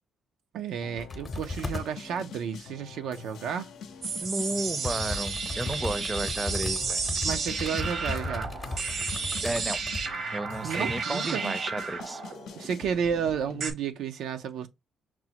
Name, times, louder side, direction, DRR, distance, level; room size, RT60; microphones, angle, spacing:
voice 1, 0.5-3.7 7.2-8.5 10.6-11.6 12.5-14.7, right 7 dB, 80° right, 0.5 m, -32 dB
sound 1, 0.8-13.7, left 6 dB, 80° left, 0.6 m, -45 dB
sound 2, 1.0-1.9 4.0-4.1 4.8-10.2 10.5-10.6, left 3 dB, 30° left, 0.7 m, -36 dB
sound 3, 4.0-13.7, right 4 dB, 65° right, 0.9 m, -33 dB
voice 2, 4.2-7.0 9.4-10.0 10.3-12.2, right 2 dB, 20° right, 0.5 m, -33 dB
5.9 x 2.0 x 2.8 m
cardioid pair, 90°, 0 cm